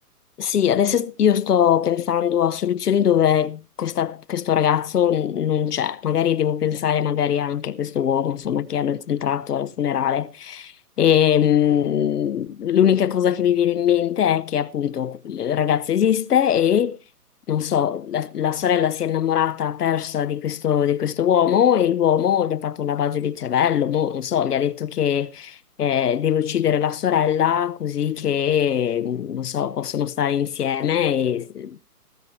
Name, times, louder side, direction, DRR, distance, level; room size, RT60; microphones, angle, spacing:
voice 1, 0.4-10.7 11.0-17.0 17.5-31.8, left 9 dB, 75° left, 1.0 m, -21 dB
18.5 x 8.3 x 4.4 m
hypercardioid pair, 160°, 47 cm